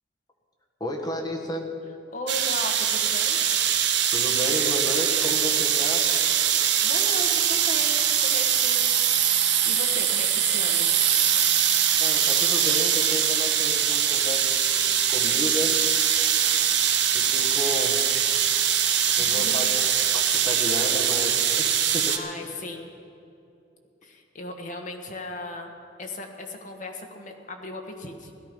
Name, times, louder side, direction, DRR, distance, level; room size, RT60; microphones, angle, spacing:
voice 1, 0.8-1.8 4.1-6.1 12.0-15.8 17.1-18.1 19.1-19.8 20.1-22.1 22.4-22.5, left 1 dB, 20° left, -1 dB, 1.6 m, -32 dB
voice 2, 2.1-3.4 6.4-8.9 9.6-10.9 19.2-19.7 22.1-22.9 24.0-25.7 26.0-28.3, left 2 dB, 40° left, 3 dB, 1.3 m, -37 dB
sound 1, 2.3-22.2, right 9 dB, 65° right, 1.0 m, -22 dB
16.5 x 12.5 x 5.3 m, 2.7 s
head